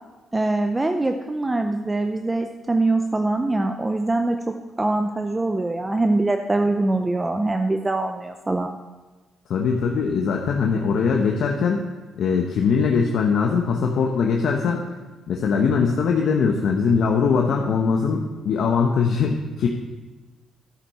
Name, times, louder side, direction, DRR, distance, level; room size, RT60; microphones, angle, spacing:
voice 1, 0.3-8.8, right 2 dB, 20° right, 6 dB, 0.5 m, -23 dB
voice 2, 9.5-11.8 12.2-15.0 15.3-19.7, left 5 dB, 70° left, 1 dB, 0.9 m, -21 dB
11.0 x 8.2 x 4.2 m, 1.2 s
cardioid pair, 90°, 0 cm